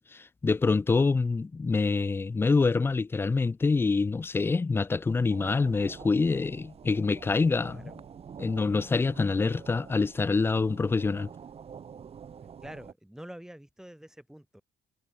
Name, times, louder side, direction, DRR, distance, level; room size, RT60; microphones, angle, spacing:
voice 1, 0.0-7.9 8.4-11.3, left 4 dB, 15° left, 0.3 m, -26 dB
sound 1, 5.3-12.9, right 7 dB, 35° right, 1.3 m, -47 dB
voice 2, 12.6-14.6, right 1 dB, 5° right, 4.1 m, -46 dB
cardioid pair, 110°, 17 cm